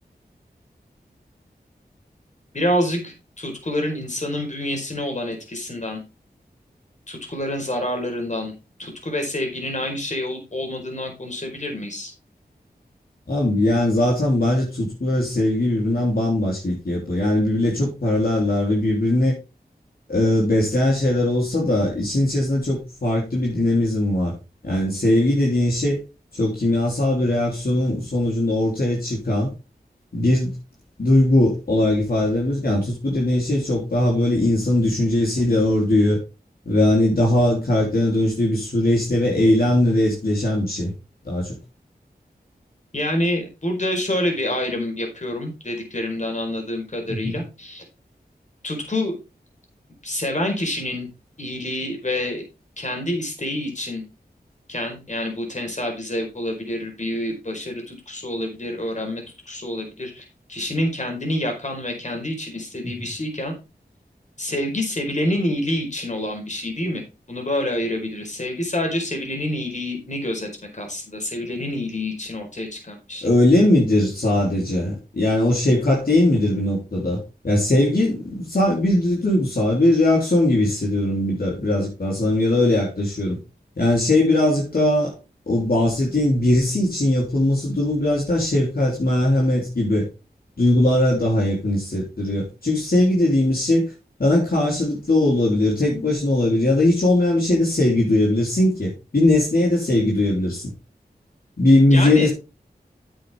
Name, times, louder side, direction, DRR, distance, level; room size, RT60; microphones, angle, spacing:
voice 1, 2.5-6.0 7.1-8.5 8.8-12.1 42.9-47.8 48.6-49.1 50.0-51.1 51.4-52.4 52.8-54.0 54.7-63.5 64.4-67.0 67.3-73.3 101.9-102.3, left 1 dB, 45° left, 4.6 m, -27 dB
voice 2, 13.3-19.4 20.1-24.3 24.6-26.0 26.3-29.5 30.1-30.5 31.0-36.2 36.7-40.9 41.3-41.6 47.1-47.3 73.2-83.4 83.8-85.1 85.5-90.1 90.6-93.9 94.2-100.7 101.6-102.3, left 1 dB, 65° left, 3.4 m, -20 dB
9.0 x 8.9 x 3.6 m
wide cardioid pair, 55°, 17 cm